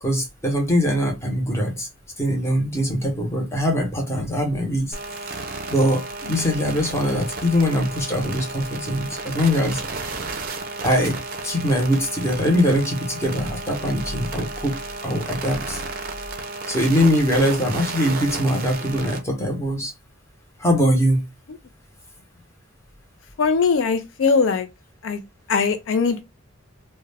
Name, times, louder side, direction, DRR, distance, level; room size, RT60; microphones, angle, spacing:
voice 1, 0.0-1.9 2.2-4.9 5.7-9.8 10.8-11.2 11.4-14.8 15.0-15.8 16.7-19.9 20.6-21.2, equal, 15° left, 0.7 m, -22 dB
sound 1, 4.9-19.2, right 3 dB, 45° right, 0.5 m, -33 dB
voice 2, 23.4-24.7 25.0-25.2 25.5-26.2, left 5 dB, 65° left, 0.3 m, -20 dB
2.3 x 2.1 x 3.1 m
head